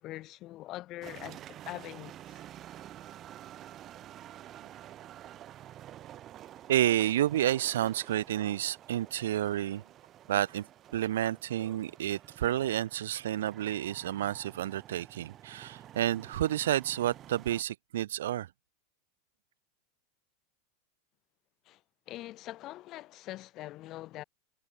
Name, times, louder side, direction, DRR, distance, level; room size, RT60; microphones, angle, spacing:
voice 1, 0.0-2.4 21.7-21.8 22.1-24.2, left 16 dB, 45° left, 2.6 m, -43 dB
sound 1, 1.0-17.6, right 12 dB, 40° right, 7.3 m, -50 dB
voice 2, 6.7-9.8 10.3-10.7 10.9-18.5, right 12 dB, 75° right, 0.5 m, -30 dB
hypercardioid pair, 100°, 0 cm